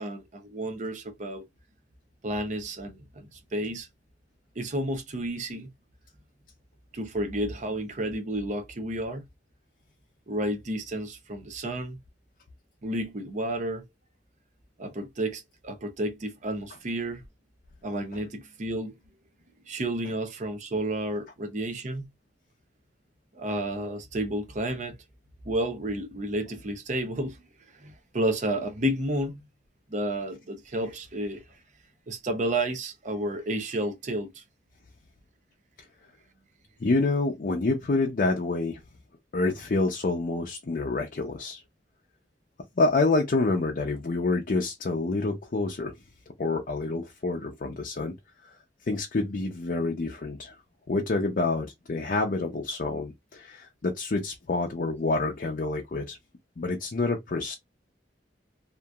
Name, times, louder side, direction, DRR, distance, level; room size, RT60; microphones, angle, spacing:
voice 1, 0.0-1.4 2.2-3.9 4.6-5.7 6.9-9.2 10.3-12.0 12.8-13.8 14.8-17.2 17.8-18.9 19.6-22.0 23.3-25.0 25.4-27.4 27.7-29.4 29.9-31.4 32.1-34.4, right 1 dB, 45° right, 0.6 m, -31 dB
voice 2, 36.8-38.8 39.3-41.6 42.8-45.9 46.4-48.1 48.4-48.6 48.8-50.6 50.9-56.2 56.6-57.5, left 3 dB, 50° left, 0.5 m, -27 dB
2.9 x 2.5 x 2.3 m
head